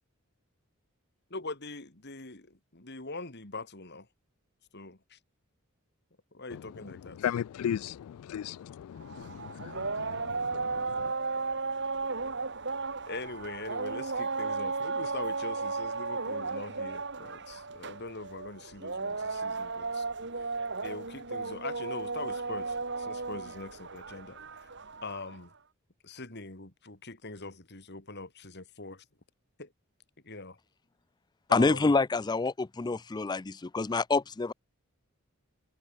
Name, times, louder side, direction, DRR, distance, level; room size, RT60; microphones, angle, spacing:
voice 1, 1.3-4.1 4.7-5.2 6.3-7.3 13.1-20.1 20.8-24.7 25.0-25.5 26.0-29.0 29.6-29.7 30.2-30.6 31.5-31.9, left 3 dB, 50° left, 3.4 m, -42 dB
voice 2, 7.2-11.0, left 9 dB, 90° left, 0.3 m, -36 dB
sound 1, 9.0-25.4, right 4 dB, 55° right, 3.1 m, -35 dB
voice 3, 31.5-34.5, left 3 dB, 20° left, 0.4 m, -27 dB
head